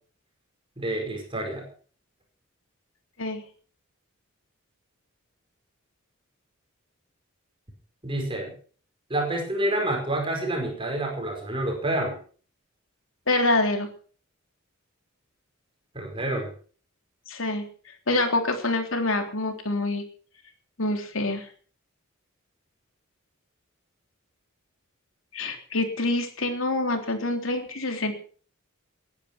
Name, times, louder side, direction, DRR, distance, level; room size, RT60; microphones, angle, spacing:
voice 1, 0.8-1.7 8.0-8.5 9.1-12.2 15.9-16.5, right 1 dB, 25° right, 2 dB, 5.2 m, -28 dB
voice 2, 13.3-13.9 17.3-17.6 18.1-20.0 20.8-21.5 25.3-28.1, left 2 dB, 70° left, 5 dB, 3.6 m, -26 dB
20.0 x 10.5 x 6.1 m, 0.44 s
head